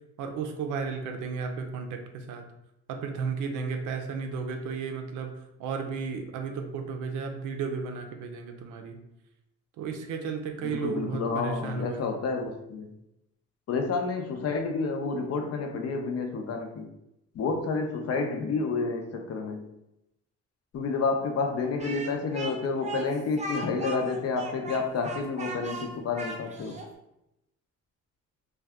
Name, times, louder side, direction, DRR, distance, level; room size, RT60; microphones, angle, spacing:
voice 1, 0.2-2.4 2.9-5.3 5.6-9.0 9.8-12.1, right 5 dB, 90° right, 5 dB, 0.5 m, -33 dB
voice 2, 10.6-13.0 13.7-16.9 17.3-19.8 20.7-26.8, left 4 dB, 55° left, 4 dB, 0.6 m, -30 dB
Speech, 21.8-26.9, right 2 dB, 25° right, 0.6 m, -37 dB
2.6 x 2.3 x 3.4 m, 0.86 s
cardioid pair, 90°, 30 cm